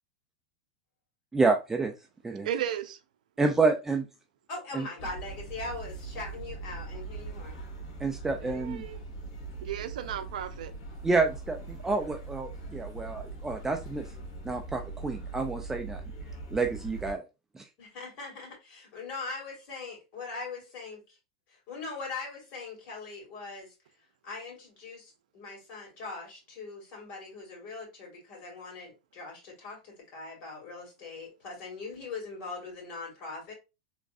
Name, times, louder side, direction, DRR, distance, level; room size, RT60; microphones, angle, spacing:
voice 1, 1.3-1.9 2.2-2.5 3.4-4.1 4.7-4.9 8.0-8.8 11.0-14.1 14.4-16.0 16.5-17.2 17.5-17.7, right 3 dB, 10° right, 0.4 m, -28 dB
voice 2, 2.4-3.0 8.4-9.0 9.6-10.7, right 10 dB, 80° right, 0.5 m, -34 dB
voice 3, 4.5-7.6 17.8-21.2 21.5-23.7 24.2-33.5, left 3 dB, 40° left, 2.2 m, -41 dB
sound 1, 5.0-17.1, right 3 dB, 70° left, 1.6 m, -41 dB
3.5 x 3.1 x 2.4 m
supercardioid pair, 130°, 4 cm